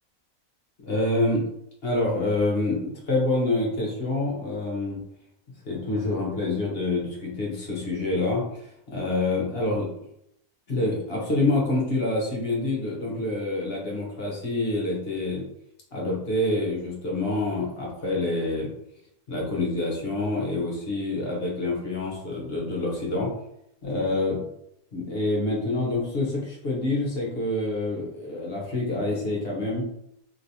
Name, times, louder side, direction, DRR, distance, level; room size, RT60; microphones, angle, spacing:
voice 1, 0.8-1.4 1.8-5.0 5.6-9.9 10.7-15.4 15.9-18.7 19.3-23.3 23.8-24.5 24.9-29.9, left 2 dB, 45° left, -3 dB, 1.0 m, -27 dB
3.1 x 3.0 x 2.7 m, 0.76 s
omnidirectional pair, 1.6 m